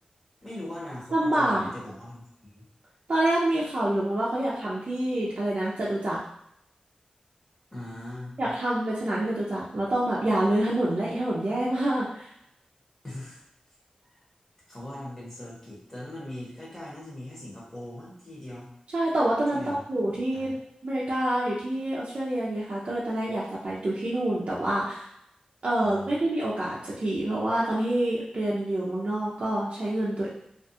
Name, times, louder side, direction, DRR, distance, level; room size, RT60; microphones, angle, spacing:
voice 1, 0.4-2.6 7.7-8.4 13.0-13.4 14.7-18.7 19.5-19.8 20.3-20.5 25.8-26.1, left 1 dB, 15° left, -7 dB, 1.0 m, -40 dB
voice 2, 1.1-1.7 3.1-6.2 8.4-12.3 18.9-20.6 20.8-25.1 25.6-30.3, right 1 dB, 55° right, -7 dB, 0.5 m, -27 dB
2.4 x 2.3 x 2.7 m, 0.75 s
wide cardioid pair, 100°, 2 cm